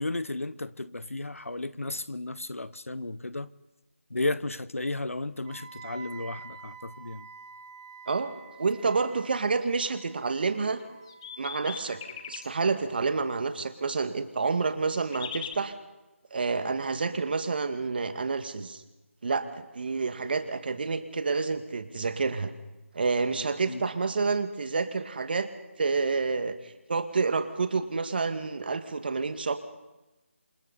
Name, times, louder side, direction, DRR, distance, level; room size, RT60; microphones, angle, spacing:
voice 1, 0.0-3.5 4.1-7.3 23.7-23.8, left 2 dB, 85° left, 1.1 m, -33 dB
Wind instrument woodwind instrument, 5.4-13.4, right 5 dB, 25° right, 4.0 m, -49 dB
voice 2, 8.6-10.8 11.4-12.0 12.3-15.7 16.3-18.8 19.2-22.5 22.9-25.5 25.8-29.6, right 4 dB, 45° right, 2.1 m, -29 dB
sound 1, 10.8-12.5 14.7-15.5, left 8 dB, 20° left, 1.1 m, -39 dB
28.5 x 27.0 x 4.3 m
figure-of-eight pair, 160°, 7 cm